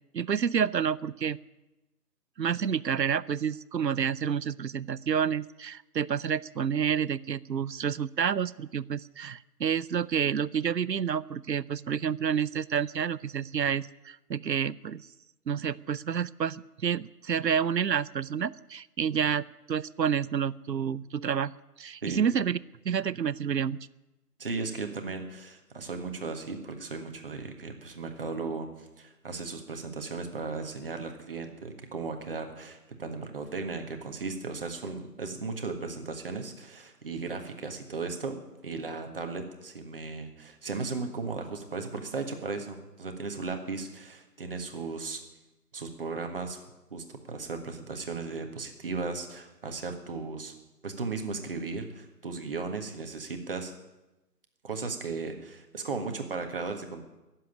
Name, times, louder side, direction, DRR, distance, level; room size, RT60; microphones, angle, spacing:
voice 1, 0.1-1.4 2.4-15.0 15.5-21.5 21.8-22.6 22.8-23.8, right 7 dB, 85° right, 20 dB, 0.7 m, -29 dB
voice 2, 24.4-38.4 38.6-45.2 45.7-46.6 46.9-50.5 50.8-53.7 54.6-57.0, right 4 dB, 35° right, 5 dB, 1.7 m, -36 dB
16.0 x 7.7 x 9.9 m, 1.0 s
figure-of-eight pair, 155°, 49 cm